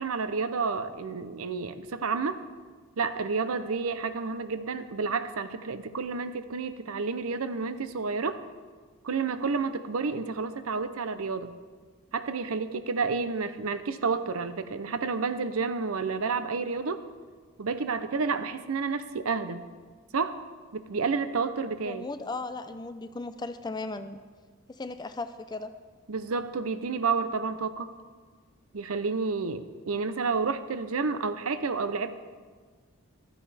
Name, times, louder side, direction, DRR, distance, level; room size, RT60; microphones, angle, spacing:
voice 1, 0.0-2.4 3.0-8.4 9.0-11.5 12.1-17.0 17.6-19.6 20.1-20.4 20.7-22.0 26.1-27.9 28.7-32.1, right 4 dB, 70° right, 11 dB, 0.7 m, -30 dB
voice 2, 21.8-24.2 24.7-25.7, left 3 dB, 20° left, 10 dB, 0.4 m, -36 dB
15.0 x 12.0 x 3.4 m, 1.5 s
head